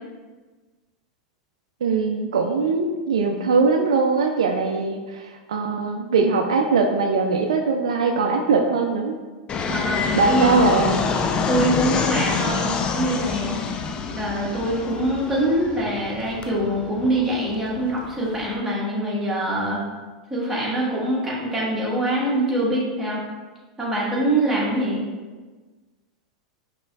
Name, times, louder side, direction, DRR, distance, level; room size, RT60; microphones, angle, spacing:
voice 1, 1.8-9.1 10.1-11.0, right 4 dB, 75° right, 3 dB, 0.3 m, -21 dB
Fixed-wing aircraft airplane, 9.5-18.5, left 5 dB, 30° left, 0.3 m, -27 dB
voice 2, 9.5-10.6 11.5-13.7 14.2-19.8 20.3-23.2 23.8-25.0, right 1 dB, 10° right, -7 dB, 1.5 m, -24 dB
5.0 x 2.9 x 2.4 m, 1.3 s
hypercardioid pair, 90°, 3 cm